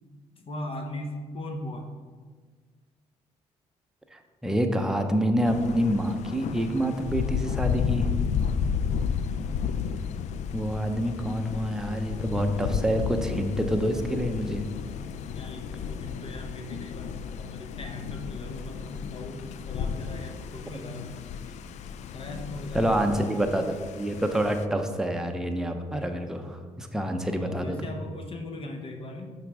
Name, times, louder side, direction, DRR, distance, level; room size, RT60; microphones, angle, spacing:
voice 1, 0.3-1.9 15.4-21.1 22.1-23.5 27.4-29.3, left 1 dB, 45° left, 3 dB, 0.9 m, -39 dB
voice 2, 4.1-8.1 10.5-14.6 22.7-27.9, equal, 5° right, 4 dB, 0.7 m, -27 dB
Thunder, 5.4-24.6, left 7 dB, 60° left, 0.4 m, -33 dB
5.8 x 4.1 x 4.7 m, 1.5 s
supercardioid pair, 70°, 13 cm